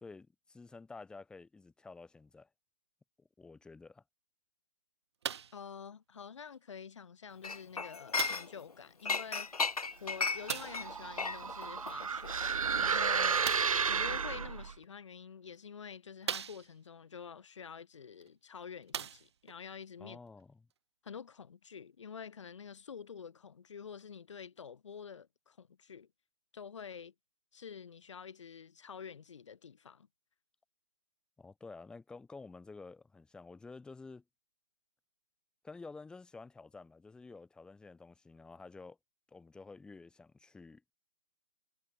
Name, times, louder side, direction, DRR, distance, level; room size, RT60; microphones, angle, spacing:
voice 1, 0.0-2.5 3.2-4.0 20.0-20.6 31.4-34.2 35.6-39.0 39.3-40.9, left 3 dB, 5° left, 2.3 m, -51 dB
sound 1, 5.2-5.6 6.5-6.6 8.2-8.6 10.5-10.9 13.4-13.9 14.8-14.9 15.5-15.6 16.2-16.9 18.2-18.3 18.8-19.6 20.4-20.5, right 8 dB, 45° right, 1.0 m, -39 dB
voice 2, 5.5-9.5 10.0-12.4 12.8-13.4 13.9-20.2 21.0-26.1 26.5-27.1 27.5-30.1, left 6 dB, 55° left, 2.4 m, -48 dB
Chink clink, 7.4-8.7 9.0-13.7 13.9-14.2, left 4 dB, 90° left, 0.5 m, -36 dB
sound 2, 10.3-14.7, right 6 dB, 65° right, 0.6 m, -32 dB
figure-of-eight pair, 135°, 19 cm